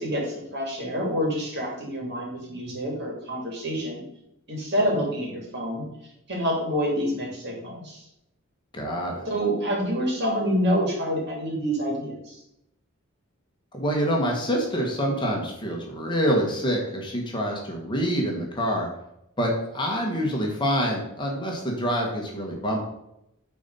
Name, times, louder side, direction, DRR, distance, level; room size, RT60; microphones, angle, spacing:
voice 1, 0.0-4.0 4.5-5.8 6.3-8.0 9.3-12.4, equal, 50° right, -2 dB, 2.7 m, -27 dB
voice 2, 8.7-9.2 13.7-18.9 19.4-22.8, equal, 20° left, 0 dB, 1.3 m, -26 dB
8.9 x 4.2 x 5.5 m, 0.82 s
head